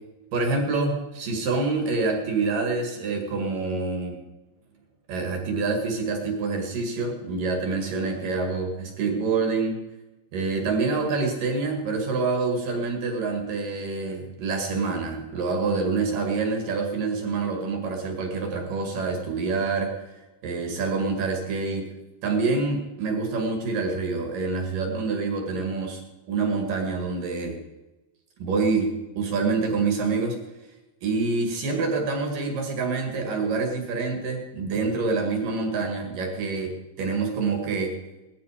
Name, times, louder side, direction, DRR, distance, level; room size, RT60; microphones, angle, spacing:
voice 1, 0.3-4.2 5.1-9.8 10.3-19.9 20.4-21.9 22.2-26.0 26.3-27.6 28.4-28.9 29.2-30.4 31.0-37.9, right 4 dB, 55° right, 2 dB, 3.4 m, -26 dB
18.5 x 13.0 x 5.0 m, 1.1 s
omnidirectional pair, 4.9 m